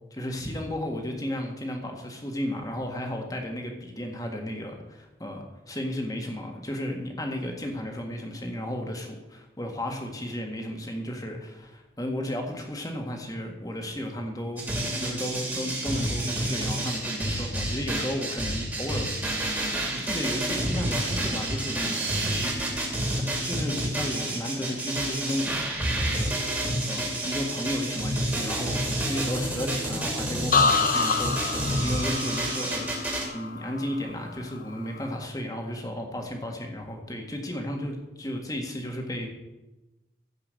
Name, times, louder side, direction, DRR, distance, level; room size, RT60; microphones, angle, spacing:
voice 1, 0.1-19.7 19.9-22.1 23.5-25.7 26.1-26.4 26.9-39.3, equal, 20° left, 2 dB, 1.8 m, -34 dB
sound 1, 14.6-33.2, right 1 dB, 10° right, 2.6 m, -29 dB
sound 2, 30.5-34.3 34.7-35.2, left 5 dB, 50° left, 0.6 m, -27 dB
15.5 x 5.7 x 7.7 m, 1.0 s
head